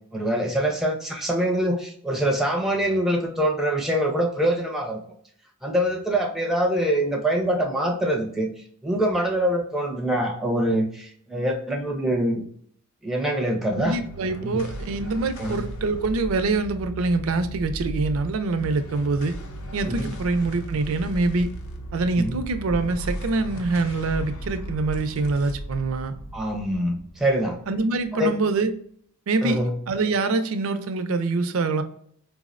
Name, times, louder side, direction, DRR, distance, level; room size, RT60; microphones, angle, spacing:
voice 1, 0.1-5.0 5.6-8.5 8.8-12.4 13.0-14.0 14.4-14.6 15.4-15.6 19.9-20.1 22.2-22.4 26.3-27.6 28.1-28.3 29.4-29.8, right 1 dB, ahead, 1 dB, 0.4 m, -24 dB
sound 1, 13.7-28.3, right 1 dB, 75° left, 0.6 m, -36 dB
voice 2, 13.7-19.4 19.7-21.5 21.9-26.1 27.7-28.7 29.3-29.6 29.9-31.8, right 3 dB, 70° right, 9 dB, 0.4 m, -25 dB
4.5 x 2.0 x 2.4 m, 0.63 s
head